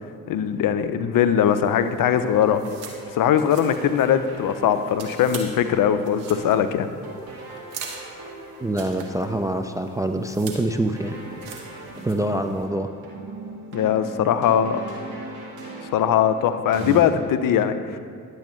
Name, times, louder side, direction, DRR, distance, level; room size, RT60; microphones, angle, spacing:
voice 1, 0.3-2.6 3.1-6.9 13.7-14.8 15.9-18.0, left 9 dB, 50° left, 10 dB, 0.6 m, -20 dB
sound 1, 1.4-12.7, right 5 dB, 85° right, 1.0 m, -43 dB
sound 2, 2.0-17.0, right 2 dB, 60° right, 1.9 m, -40 dB
voice 2, 8.6-11.1 12.0-12.9, right 1 dB, 10° right, 6 dB, 0.3 m, -25 dB
10.0 x 7.7 x 3.1 m, 2.2 s
hypercardioid pair, 50°, 41 cm